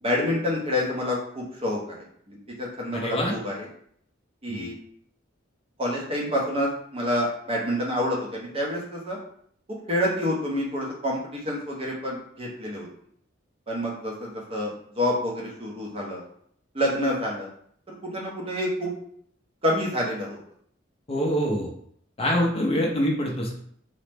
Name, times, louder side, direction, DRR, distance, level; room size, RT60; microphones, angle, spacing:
voice 1, 0.0-2.0 2.3-3.7 4.4-4.7 5.8-9.2 9.7-12.9 13.7-16.2 16.7-17.5 17.9-18.9 19.6-20.4, left 1 dB, 30° right, -2 dB, 0.6 m, -28 dB
voice 2, 2.9-3.3 4.5-4.7 21.1-21.7 22.2-23.5, equal, 30° left, -1 dB, 0.4 m, -25 dB
2.8 x 2.0 x 3.3 m, 0.64 s
head